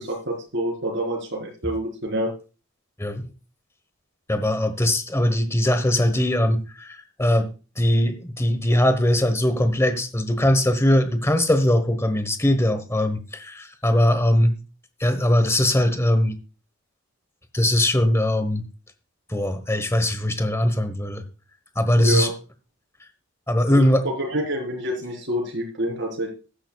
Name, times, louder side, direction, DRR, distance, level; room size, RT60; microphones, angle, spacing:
voice 1, 0.0-2.3 22.0-22.3 23.7-26.3, equal, 55° right, 0 dB, 4.3 m, -27 dB
voice 2, 4.3-7.5 7.8-14.5 15.0-16.4 17.5-18.6 19.3-21.2 21.8-22.3 23.5-24.0, left 1 dB, 15° left, 10 dB, 1.2 m, -21 dB
14.5 x 11.5 x 2.4 m, 0.33 s
head